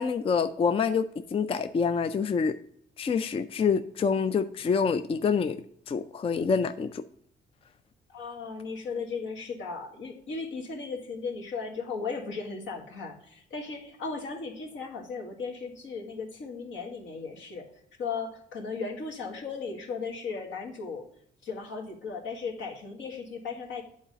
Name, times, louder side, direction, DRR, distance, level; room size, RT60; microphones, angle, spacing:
voice 1, 0.0-2.6 3.0-5.6 5.9-7.0, left 5 dB, 30° left, 0.4 m, -26 dB
voice 2, 8.1-21.1 21.4-23.8, left 4 dB, 75° left, 1.7 m, -36 dB
8.6 x 4.1 x 5.1 m
cardioid pair, 90°, 20 cm